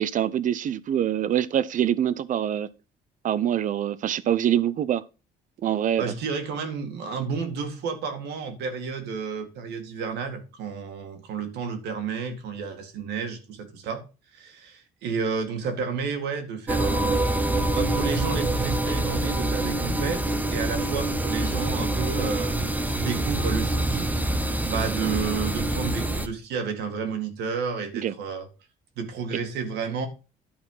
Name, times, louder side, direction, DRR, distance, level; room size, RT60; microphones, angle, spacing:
voice 1, 0.0-2.7 3.2-5.0 5.6-6.0 28.0-28.1, right 10 dB, 50° right, 0.7 m, -24 dB
voice 2, 6.0-14.0 14.3-17.2 17.7-22.6 22.9-24.1 24.6-28.5 29.0-30.1, right 5 dB, 80° right, 2.2 m, -31 dB
sound 1, 16.7-26.3, right 1 dB, 10° right, 0.9 m, -26 dB
11.0 x 4.4 x 5.6 m
cardioid pair, 110°, 17 cm